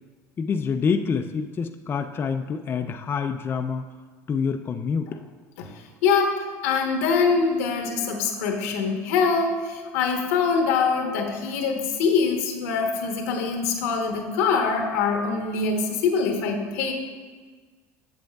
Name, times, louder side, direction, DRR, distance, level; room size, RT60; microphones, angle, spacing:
voice 1, 0.4-3.9 4.3-5.2, left 6 dB, 30° left, 6 dB, 0.3 m, -27 dB
voice 2, 6.0-16.9, left 5 dB, 85° left, 2 dB, 1.0 m, -24 dB
7.9 x 7.0 x 2.3 m, 1.4 s
supercardioid pair, 95°, 8 cm